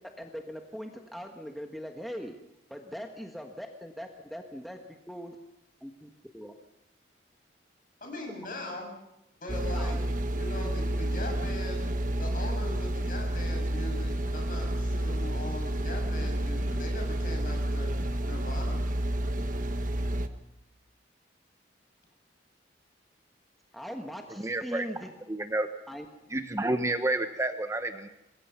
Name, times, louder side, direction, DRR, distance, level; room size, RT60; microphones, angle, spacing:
voice 1, 0.2-2.3 2.7-4.8 5.1-5.4 5.8-6.5 9.7-10.1 23.7-25.1 25.9-26.1, equal, ahead, 3 dB, 1.4 m, -41 dB
voice 2, 8.0-8.9 9.4-10.0 10.4-18.8, left 1 dB, 50° left, 2 dB, 6.9 m, -40 dB
sound 1, 9.5-20.3, right 1 dB, 45° right, 1.3 m, -30 dB
voice 3, 24.4-24.9 25.3-25.7 26.3-28.1, right 2 dB, 15° right, 8 dB, 1.0 m, -29 dB
26.0 x 21.5 x 5.7 m, 0.90 s
head